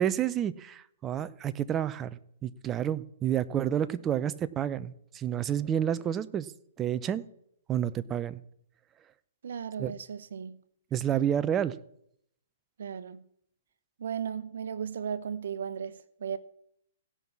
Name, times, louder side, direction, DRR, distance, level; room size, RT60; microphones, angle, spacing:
voice 1, 0.0-6.5 6.8-7.2 7.7-8.4 9.8-9.9 10.9-11.7, right 10 dB, 20° right, 0.5 m, -29 dB
voice 2, 9.4-10.6 12.8-13.2 14.0-16.4, right 7 dB, 70° right, 0.9 m, -36 dB
16.5 x 5.5 x 5.9 m
hypercardioid pair, 130°, 0 cm